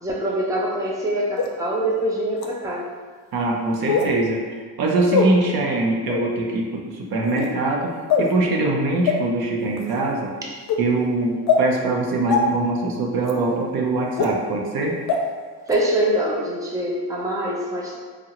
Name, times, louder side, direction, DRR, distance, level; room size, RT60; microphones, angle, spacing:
voice 1, 0.0-2.8 15.7-18.0, right 1 dB, 10° right, -3 dB, 0.5 m, -24 dB
sound 1, 1.4-1.5 2.4-2.5 3.9-4.1 5.1-5.3 6.1-6.3 7.2-7.5 8.1-8.3 9.1-9.2 9.8-10.0 10.7-10.8 11.5-11.6 12.3-12.4 13.2-13.3 14.2-14.3 15.1-15.2 15.7-15.8, left 5 dB, 65° left, 0.5 m, -20 dB
voice 2, 3.3-7.9 8.2-10.3 10.8-15.0, right 2 dB, 65° right, 0 dB, 0.6 m, -23 dB
3.6 x 2.0 x 2.8 m, 1.5 s
cardioid pair, 85°, 39 cm